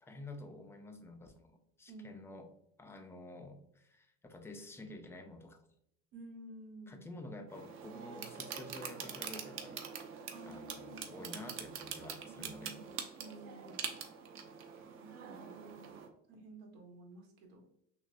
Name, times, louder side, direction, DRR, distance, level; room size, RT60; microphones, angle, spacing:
voice 1, 0.0-2.5 2.8-5.6 6.9-9.8 10.4-12.8, left 2 dB, 10° left, 5 dB, 0.3 m, -50 dB
voice 2, 1.9-2.4 6.1-7.1 10.3-11.4 12.3-13.8 15.0-15.9 16.3-17.6, right 2 dB, 85° right, 1 dB, 1.2 m, -52 dB
sound 1, 7.5-16.1, right 7 dB, 45° right, 0.5 m, -45 dB
6.0 x 2.1 x 2.5 m, 0.73 s
cardioid pair, 140°, 31 cm